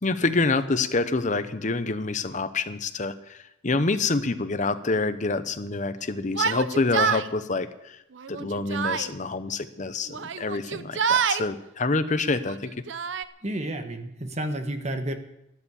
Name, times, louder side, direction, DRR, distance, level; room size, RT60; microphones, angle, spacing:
voice 1, 0.0-3.4 3.6-8.0 8.3-12.7, left 3 dB, 40° left, 10 dB, 0.9 m, -27 dB
Yell, 6.3-7.3 8.2-9.1 10.1-11.5 12.3-13.2, right 6 dB, 70° right, 0.7 m, -27 dB
voice 2, 13.4-15.1, right 1 dB, 35° right, 7 dB, 1.4 m, -31 dB
13.0 x 11.5 x 7.1 m, 0.84 s
head